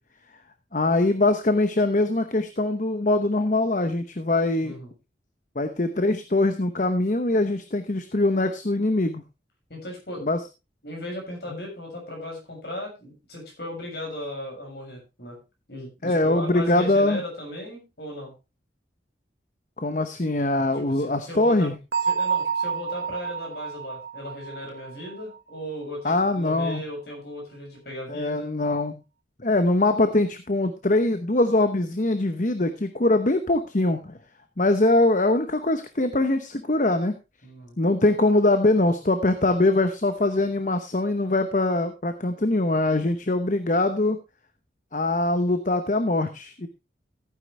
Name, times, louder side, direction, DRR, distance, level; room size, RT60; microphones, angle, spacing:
voice 1, 0.7-4.8 5.5-9.2 10.2-10.4 16.0-17.2 19.8-21.7 26.0-26.8 28.1-28.9 29.4-34.1 34.6-37.1 37.8-44.2 44.9-46.7, left 2 dB, 45° left, 8 dB, 0.9 m, -22 dB
voice 2, 4.6-4.9 9.7-10.3 10.8-15.4 15.7-18.3 20.7-21.7 22.0-28.5 37.4-37.8, left 1 dB, 60° left, 0 dB, 6.7 m, -37 dB
Bell, 21.9-25.6, right 6 dB, 65° right, 1.2 m, -29 dB
15.0 x 9.5 x 3.3 m, 0.27 s
head